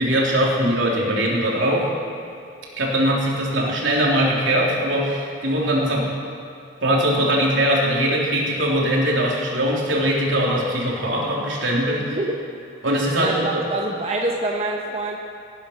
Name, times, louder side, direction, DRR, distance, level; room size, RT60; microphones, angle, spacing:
voice 1, 0.0-1.9 2.8-6.1 6.8-12.2 12.8-13.6, equal, 80° right, -3 dB, 3.1 m, -21 dB
voice 2, 12.0-12.3 13.1-15.2, right 2 dB, 35° right, -1 dB, 1.1 m, -26 dB
18.0 x 9.7 x 5.8 m, 2.6 s
head